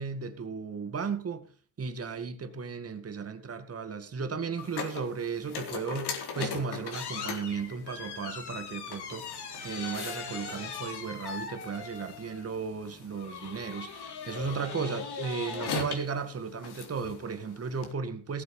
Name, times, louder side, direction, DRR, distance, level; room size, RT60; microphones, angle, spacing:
voice 1, 0.0-1.5 1.8-18.4, right 5 dB, 30° right, 2.2 m, -35 dB
sound 1, 4.6-17.9, left 5 dB, 60° left, 4.0 m, -39 dB
18.0 x 8.0 x 5.5 m
cardioid pair, 110°, 45 cm